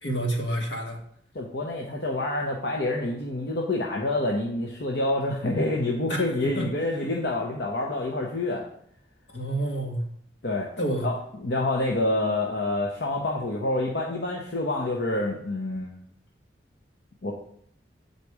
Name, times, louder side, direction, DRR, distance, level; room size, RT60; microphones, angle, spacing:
voice 1, 0.0-1.0 6.1-6.7 9.3-10.0 10.8-11.1, right 1 dB, 75° left, 1 dB, 1.7 m, -29 dB
voice 2, 1.3-8.6 10.4-10.7 11.0-15.9 17.2-17.3, left 2 dB, 60° left, -1 dB, 0.9 m, -27 dB
8.2 x 4.2 x 4.8 m, 0.66 s
head